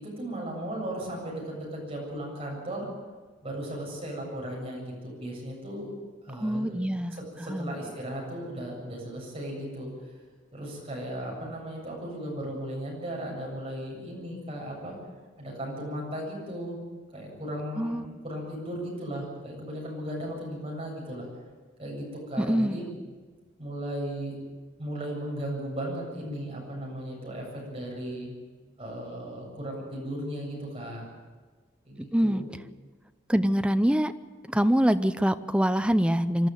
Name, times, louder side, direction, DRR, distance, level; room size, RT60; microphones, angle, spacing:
voice 1, 0.0-2.9 3.4-5.9 6.2-9.9 10.5-14.9 15.4-16.8 17.1-21.3 21.8-22.9 23.6-24.3 24.8-28.3 28.8-31.1 31.9-32.5, right 1 dB, 30° right, -2 dB, 7.7 m, -36 dB
voice 2, 6.4-7.1 7.4-7.7 17.8-18.1 22.4-22.8 32.1-32.4 33.3-34.1 34.5-36.5, equal, 5° right, 11 dB, 0.6 m, -24 dB
24.5 x 12.5 x 9.3 m, 1.4 s
head